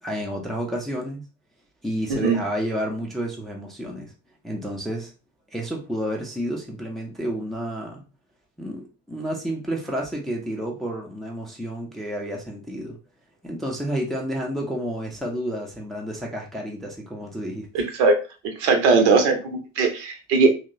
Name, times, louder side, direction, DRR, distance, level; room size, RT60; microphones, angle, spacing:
voice 1, 0.0-1.2 1.8-4.1 4.4-5.1 5.5-8.0 8.6-13.0 13.4-17.8, equal, ahead, 0.5 m, -30 dB
voice 2, 17.7-18.1 18.6-20.5, right 4 dB, 60° right, 0.7 m, -19 dB
2.9 x 2.0 x 2.5 m
figure-of-eight pair, 55°, 39 cm